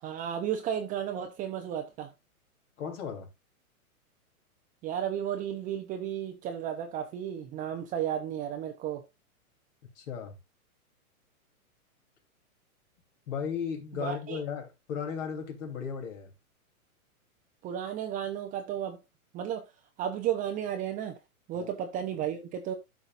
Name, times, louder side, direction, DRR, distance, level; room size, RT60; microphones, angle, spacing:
voice 1, 0.0-2.1 4.8-9.0 13.9-14.4 17.6-19.0 19.3-19.7 20.0-21.2 21.5-22.7, right 9 dB, 20° right, 0.6 m, -33 dB
voice 2, 2.8-3.3 10.0-10.3 13.3-16.3 21.5-21.7, left 7 dB, 55° left, 3.4 m, -35 dB
12.5 x 5.8 x 2.5 m
hypercardioid pair, 135°, 44 cm